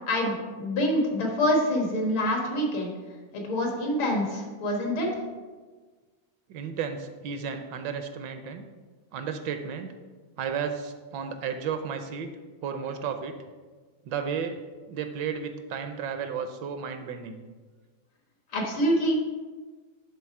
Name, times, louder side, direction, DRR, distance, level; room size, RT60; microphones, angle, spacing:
voice 1, 0.1-2.9 3.3-5.1 18.5-19.3, equal, 85° left, 0 dB, 2.4 m, -26 dB
voice 2, 6.5-8.6 9.1-9.9 10.4-12.3 12.6-13.3 14.0-14.6 14.9-17.4, right 7 dB, 75° right, 7 dB, 1.1 m, -33 dB
10.5 x 3.8 x 4.6 m, 1.4 s
omnidirectional pair, 2.2 m